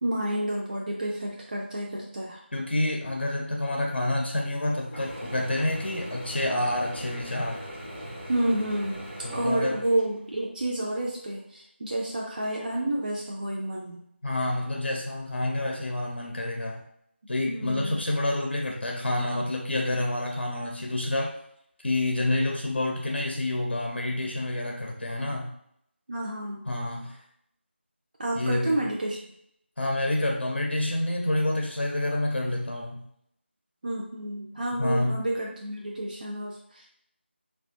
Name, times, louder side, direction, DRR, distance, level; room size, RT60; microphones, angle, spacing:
voice 1, 0.0-2.4 8.3-14.0 17.4-18.0 26.1-26.6 28.2-29.2 33.8-36.9, right 1 dB, 45° right, -2 dB, 0.4 m, -30 dB
voice 2, 2.5-7.6 9.2-9.8 14.2-16.8 17.3-21.3 21.8-25.5 26.7-27.2 28.3-28.8 29.8-33.0 34.8-35.2, left 1 dB, 60° left, 0 dB, 0.5 m, -28 dB
Mechanisms / Drill, 4.9-10.4, equal, 5° left, 0.5 m, -40 dB
3.2 x 2.2 x 2.5 m, 0.72 s
figure-of-eight pair, 165°, 6 cm